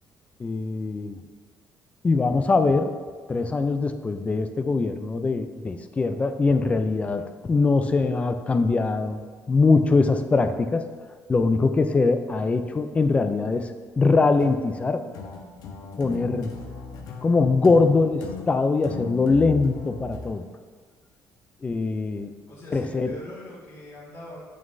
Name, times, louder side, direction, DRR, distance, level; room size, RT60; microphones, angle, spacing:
voice 1, 0.4-1.2 2.0-2.9 3.3-9.2 9.5-10.8 11.3-13.7 14.0-15.0 16.0-16.5 17.2-20.4 21.6-22.3 22.7-23.1, left 3 dB, 20° left, 9 dB, 0.4 m, -22 dB
sound 1, 14.4-20.3, left 4 dB, 80° left, 0.8 m, -38 dB
voice 2, 22.5-24.4, left 1 dB, 45° left, -7 dB, 1.8 m, -42 dB
9.0 x 6.3 x 2.6 m, 1.5 s
cardioid pair, 155°, 6 cm